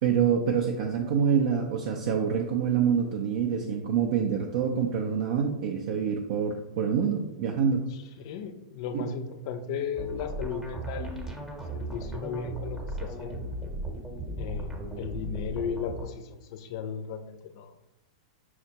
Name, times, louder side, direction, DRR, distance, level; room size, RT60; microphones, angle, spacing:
voice 1, 0.0-7.9 8.9-9.0, right 7 dB, 60° right, 1 dB, 0.4 m, -26 dB
voice 2, 7.9-11.5 11.7-13.4 14.4-17.7, left 6 dB, 55° left, 7 dB, 0.4 m, -36 dB
sound 1, 9.9-16.1, right 1 dB, 10° right, 0.8 m, -37 dB
5.8 x 2.1 x 2.8 m, 0.98 s
hypercardioid pair, 105°, 3 cm